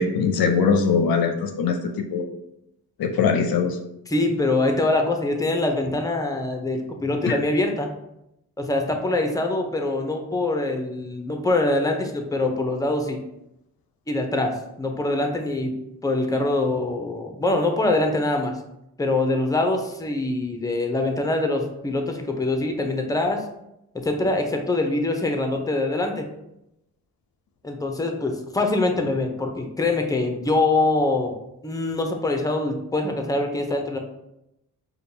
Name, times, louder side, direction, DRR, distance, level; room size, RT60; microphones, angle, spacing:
voice 1, 0.0-2.3 3.0-3.8 7.3-7.4, left 5 dB, 60° left, 5 dB, 0.6 m, -21 dB
voice 2, 4.1-7.9 8.6-13.2 14.1-15.7 16.0-18.5 19.0-23.5 23.9-26.2 27.6-31.3 31.6-34.0, left 2 dB, 10° left, 3 dB, 0.7 m, -24 dB
5.0 x 2.3 x 2.8 m, 0.84 s
supercardioid pair, 40°, 40 cm